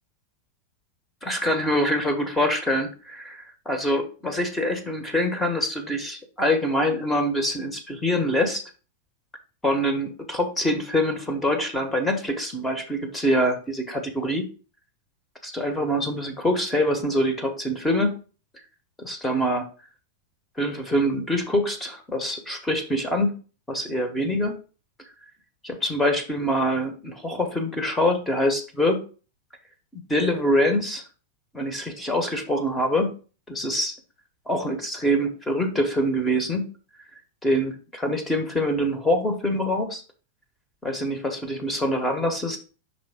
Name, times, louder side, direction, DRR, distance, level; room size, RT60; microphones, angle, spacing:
voice 1, 1.2-8.6 9.6-14.4 15.4-18.2 19.0-19.7 20.6-23.4 23.7-24.6 25.6-29.0 29.9-31.0 31.5-33.1 33.5-34.0 34.5-36.7 37.4-40.0 40.8-42.6, equal, 10° left, 5 dB, 1.2 m, -25 dB
5.5 x 3.8 x 5.0 m, 0.36 s
figure-of-eight pair, 90°, 0 cm